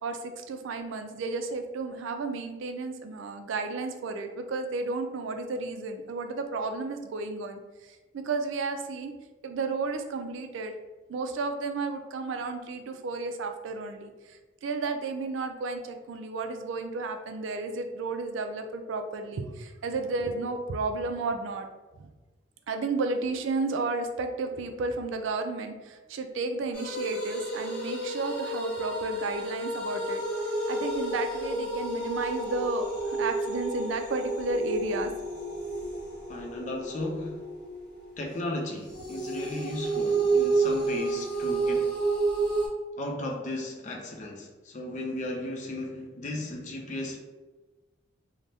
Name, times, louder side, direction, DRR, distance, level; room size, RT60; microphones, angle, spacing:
voice 1, 0.0-9.1 9.4-10.7 11.1-21.7 22.0-22.1 22.7-30.2 30.7-35.1, right 3 dB, 80° right, 6 dB, 0.3 m, -32 dB
sound 1, 26.7-38.2 38.9-42.7, right 2 dB, 5° left, 0.9 m, -30 dB
voice 2, 36.3-37.5 38.2-42.0 43.0-47.2, left 1 dB, 40° left, 1 dB, 0.4 m, -35 dB
3.3 x 2.1 x 2.6 m, 1.2 s
head